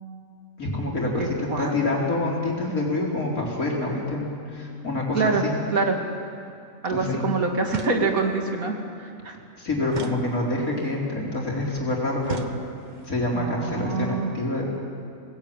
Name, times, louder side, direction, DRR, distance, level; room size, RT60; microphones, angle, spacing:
voice 1, 0.6-5.5 6.9-7.2 9.6-12.5 13.1-14.6, left 2 dB, 85° left, -2 dB, 4.4 m, -27 dB
voice 2, 1.2-1.7 5.1-5.4 5.7-6.0 6.8-8.7 9.0-9.4 13.3-14.3, right 4 dB, 80° right, 2 dB, 2.8 m, -25 dB
sound 1, 7.7-8.4 9.9-10.9 12.2-13.1, right 3 dB, 35° right, 1.1 m, -36 dB
22.5 x 18.0 x 9.1 m, 2.4 s
omnidirectional pair, 1.5 m